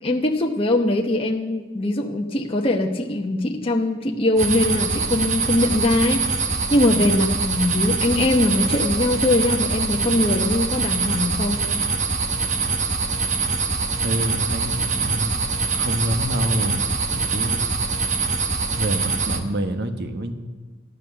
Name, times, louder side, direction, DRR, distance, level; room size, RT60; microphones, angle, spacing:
voice 1, 0.0-6.4 6.7-11.6, left 1 dB, 30° left, 1 dB, 0.9 m, -21 dB
sound 1, 4.4-19.4, right 4 dB, 40° right, 1.2 m, -24 dB
voice 2, 14.0-15.5 15.7-16.8 17.1-17.7 18.7-20.3, equal, 55° right, 7 dB, 1.3 m, -27 dB
13.5 x 11.5 x 6.9 m, 1.4 s
head